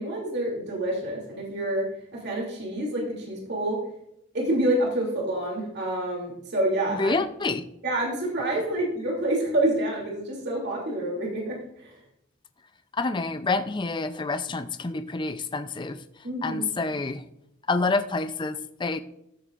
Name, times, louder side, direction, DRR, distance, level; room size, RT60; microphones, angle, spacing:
voice 1, 0.0-1.9 2.1-3.8 4.3-7.2 7.8-11.9 16.2-16.9, right 1 dB, 55° right, -2 dB, 2.8 m, -28 dB
voice 2, 6.9-7.7 12.9-16.0 16.4-17.2 17.7-19.0, left 3 dB, 20° left, 11 dB, 0.5 m, -28 dB
14.0 x 7.9 x 2.5 m, 0.80 s
head